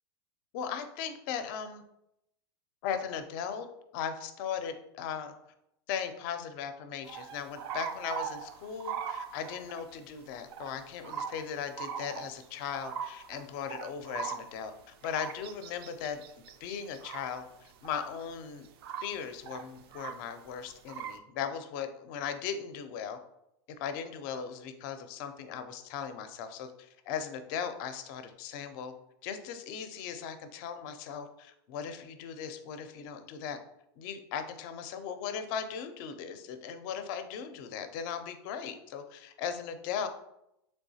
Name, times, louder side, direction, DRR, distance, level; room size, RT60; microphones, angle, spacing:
voice 1, 0.5-1.8 2.8-3.7 3.9-5.3 5.9-16.2 16.6-18.7 19.0-23.2 23.8-28.9 29.2-33.6 34.0-40.1, left 7 dB, 50° left, 9 dB, 0.4 m, -38 dB
sound 1, 7.1-9.9 10.5-10.7 11.0-11.5 11.8-18.3 18.6-20.3 20.7-21.2, right 7 dB, 65° right, 0.4 m, -40 dB
3.3 x 3.0 x 2.7 m, 0.82 s
supercardioid pair, 135°, 14 cm